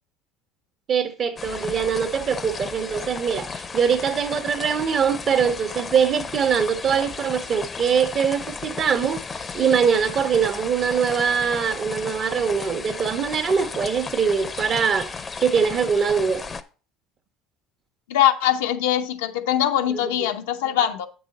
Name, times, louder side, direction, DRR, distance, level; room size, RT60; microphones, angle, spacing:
voice 1, 0.9-15.2 15.4-16.4 19.9-20.0, right 6 dB, 45° right, 1.2 m, -22 dB
sound 1, 1.4-16.6, left 5 dB, 25° left, 0.7 m, -34 dB
voice 2, 18.1-21.1, left 11 dB, 90° left, 0.9 m, -22 dB
8.4 x 6.2 x 4.2 m
supercardioid pair, 100°, 0 cm